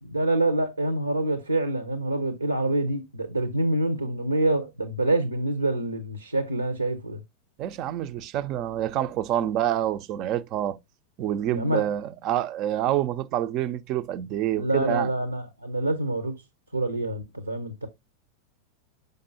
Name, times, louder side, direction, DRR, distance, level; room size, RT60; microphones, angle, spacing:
voice 1, 0.0-7.2 11.5-11.9 14.5-16.3 16.7-17.9, right 2 dB, 85° right, 0.8 m, -26 dB
voice 2, 7.6-10.8 11.2-15.1, right 12 dB, 40° right, 0.5 m, -27 dB
6.6 x 5.3 x 2.7 m
figure-of-eight pair, 90°, 0 cm